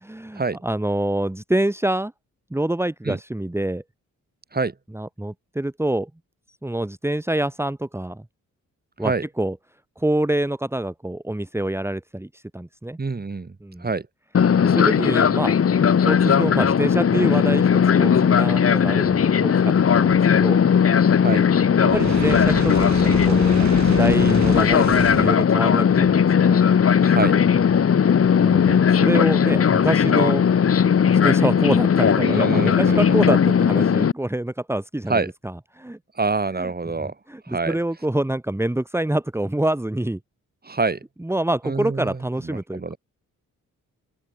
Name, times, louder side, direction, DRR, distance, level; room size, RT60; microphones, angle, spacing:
voice 1, 0.1-2.1 2.5-3.8 4.9-6.1 6.6-8.2 9.0-9.6 10.0-13.0 13.6-13.9 14.6-15.6 16.0-20.6 21.9-26.6 27.7-27.8 28.4-30.5 31.1-36.0 36.6-36.7 37.0-40.2 41.2-42.8, right 1 dB, 10° right, 2.4 m, -26 dB
voice 2, 13.0-14.1 21.1-21.5 27.0-27.4 32.2-33.1 35.1-35.3 36.1-37.1 37.4-37.8 40.6-41.0 41.6-42.2 42.4-43.0, right 3 dB, 30° right, 6.7 m, -26 dB
Fixed-wing aircraft airplane, 14.3-34.1, left 7 dB, 45° left, 1.2 m, -17 dB
Fire, 21.8-25.4, right 7 dB, 60° right, 3.7 m, -30 dB
open air
wide cardioid pair, 115°, 32 cm